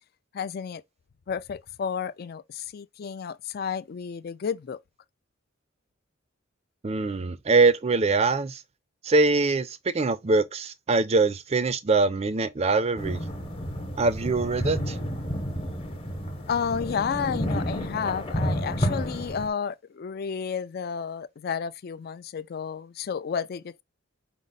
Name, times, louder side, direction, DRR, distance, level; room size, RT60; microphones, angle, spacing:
voice 1, 0.3-0.8 1.3-4.8 16.5-23.8, left 6 dB, 50° left, 0.3 m, -31 dB
voice 2, 6.8-8.6 9.0-13.2 14.0-15.0, right 3 dB, 30° right, 0.4 m, -23 dB
sound 1, 13.0-19.5, equal, 25° left, 0.9 m, -31 dB
5.2 x 2.0 x 3.8 m
head